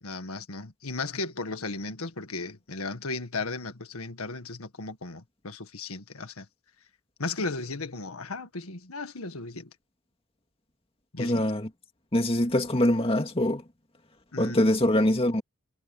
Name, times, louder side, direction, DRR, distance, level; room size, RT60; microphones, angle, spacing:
voice 1, 0.0-6.5 7.2-9.7 11.1-11.4 14.3-14.7, left 3 dB, 85° left, 1.8 m, -35 dB
voice 2, 11.2-11.7 12.1-13.6 14.4-15.4, left 1 dB, 25° left, 2.3 m, -23 dB
head